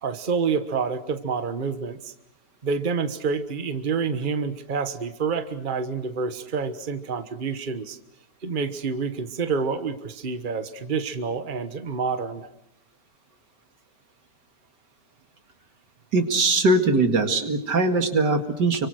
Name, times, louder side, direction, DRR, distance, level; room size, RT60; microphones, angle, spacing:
voice 1, 0.0-2.1 2.6-8.0 8.4-12.5, right 5 dB, 30° right, 10 dB, 1.4 m, -28 dB
voice 2, 16.1-18.9, right 2 dB, 85° right, 7 dB, 2.7 m, -21 dB
30.0 x 24.5 x 6.5 m, 0.77 s
omnidirectional pair, 1.8 m